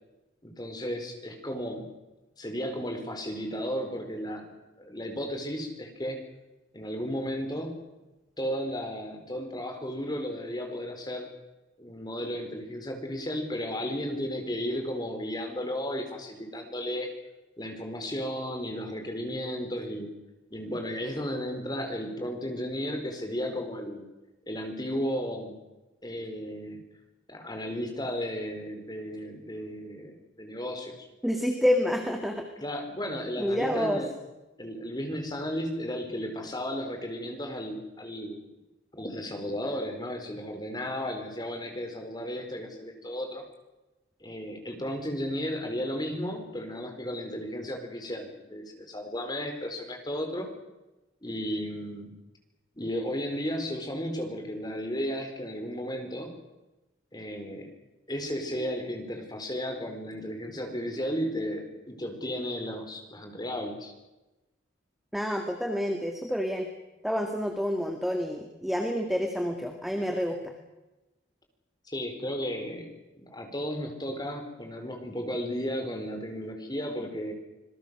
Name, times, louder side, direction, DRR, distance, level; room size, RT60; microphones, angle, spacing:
voice 1, 0.4-1.9 2.4-6.2 6.7-7.8 8.4-11.3 11.8-17.1 17.6-20.1 20.5-24.1 24.5-25.6 26.0-26.8 27.3-31.1 32.6-34.1 34.6-38.5 38.9-43.4 44.2-50.5 51.2-52.1 52.8-56.3 57.1-57.7 58.1-63.9 71.9-77.3, equal, 20° left, 4 dB, 4.3 m, -34 dB
voice 2, 31.2-32.5 33.4-34.0 65.1-66.7 67.0-70.5, equal, ahead, 4 dB, 1.9 m, -28 dB
26.5 x 21.5 x 6.5 m, 1.0 s
head